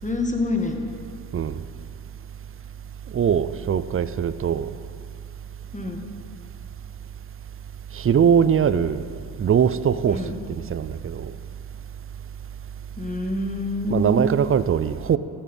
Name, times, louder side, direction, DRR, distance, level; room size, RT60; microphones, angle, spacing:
voice 1, 0.0-0.8 5.7-6.0 10.1-10.4 13.0-14.5, left 2 dB, 15° left, 3 dB, 1.7 m, -27 dB
voice 2, 3.1-4.7 7.9-9.1 9.4-10.2 10.7-11.3 13.9-15.2, right 8 dB, 30° right, 15 dB, 0.5 m, -21 dB
14.5 x 7.3 x 5.5 m, 2.6 s
supercardioid pair, 60°, 43 cm